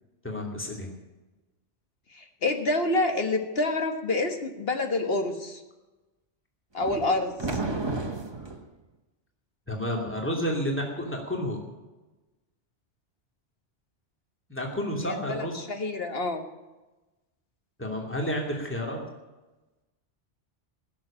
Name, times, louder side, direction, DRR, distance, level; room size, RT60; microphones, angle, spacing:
voice 1, 0.2-0.9 9.7-11.6 14.5-15.6 17.8-19.0, equal, 10° left, 0 dB, 2.8 m, -30 dB
voice 2, 2.2-5.6 6.7-7.6 15.0-16.4, left 2 dB, 55° left, 6 dB, 1.7 m, -28 dB
sound 1, 6.8-8.7, right 2 dB, 25° right, 1.3 m, -32 dB
16.0 x 7.3 x 8.7 m, 1.1 s
omnidirectional pair, 1.2 m